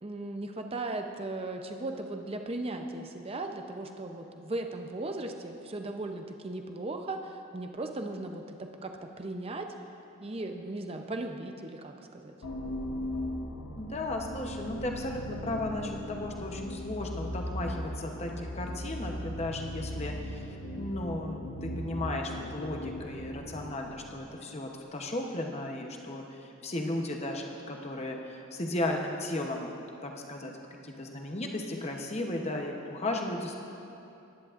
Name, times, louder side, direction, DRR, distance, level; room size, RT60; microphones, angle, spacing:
voice 1, 0.0-9.7 10.2-12.3, right 2 dB, 25° right, 4 dB, 0.6 m, -37 dB
sound 1, 12.4-24.3, left 1 dB, 75° left, 1.0 m, -38 dB
voice 2, 13.8-20.5 20.8-29.7 30.0-30.5 30.8-33.5, left 1 dB, 30° left, 2 dB, 0.8 m, -35 dB
19.0 x 10.5 x 2.5 m, 2.8 s
head